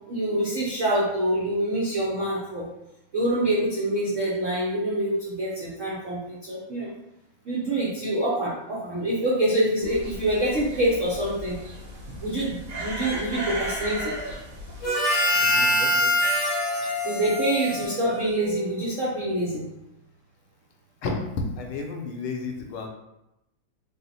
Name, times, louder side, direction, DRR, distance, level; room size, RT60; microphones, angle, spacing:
voice 1, 0.1-2.7 3.1-6.9 7.4-11.6 12.2-14.2 17.0-19.7, right 1 dB, 75° right, -6 dB, 0.7 m, -26 dB
sound 1, 9.8-14.9, equal, 55° right, 1.6 m, -35 dB
Harmonica, 14.8-18.6, equal, 60° left, 0.9 m, -24 dB
voice 2, 15.3-16.3 16.8-17.0 17.7-17.9 21.0-21.3 21.6-22.9, left 4 dB, 80° left, 2 dB, 1.4 m, -34 dB
4.1 x 2.1 x 4.0 m, 0.88 s
omnidirectional pair, 2.4 m